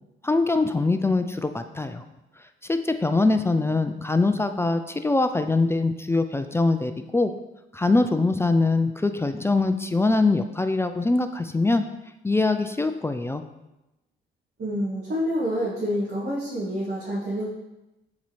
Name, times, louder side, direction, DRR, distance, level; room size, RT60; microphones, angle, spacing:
voice 1, 0.2-2.0 2.7-7.3 7.7-11.8 12.2-13.4, left 3 dB, 15° left, 8 dB, 0.3 m, -23 dB
voice 2, 14.6-17.5, equal, 55° right, -8 dB, 1.9 m, -27 dB
7.6 x 4.2 x 3.1 m, 0.96 s
cardioid pair, 90°, 20 cm